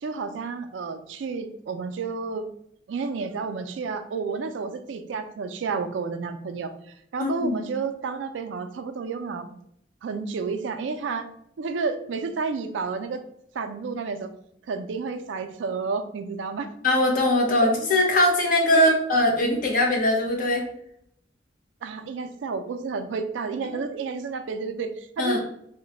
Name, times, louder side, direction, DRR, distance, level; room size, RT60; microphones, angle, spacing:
voice 1, 0.0-2.5 2.9-6.7 7.1-9.6 10.0-11.3 11.6-13.2 13.5-14.3 14.7-16.7 17.6-17.7 18.7-19.0 21.8-25.4, right 4 dB, 85° right, 9 dB, 0.4 m, -31 dB
voice 2, 7.2-7.5 16.8-20.7 25.2-25.4, left 1 dB, 50° left, 1 dB, 0.7 m, -21 dB
3.0 x 2.1 x 3.8 m, 0.71 s
head